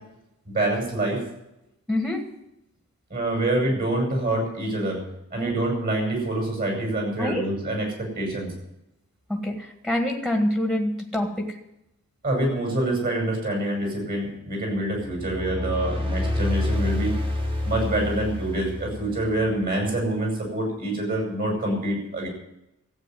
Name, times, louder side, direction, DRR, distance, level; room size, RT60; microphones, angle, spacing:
voice 1, 0.5-1.2 3.1-5.0 5.3-8.5 12.2-17.2 17.6-22.3, right 1 dB, 40° right, 1 dB, 6.1 m, -26 dB
voice 2, 1.9-2.3 5.4-5.6 7.2-7.5 9.3-11.6, left 1 dB, ahead, 3 dB, 1.7 m, -26 dB
sound 1, 14.9-19.6, left 1 dB, 25° right, 1.9 m, -28 dB
14.0 x 8.6 x 9.3 m, 0.86 s
head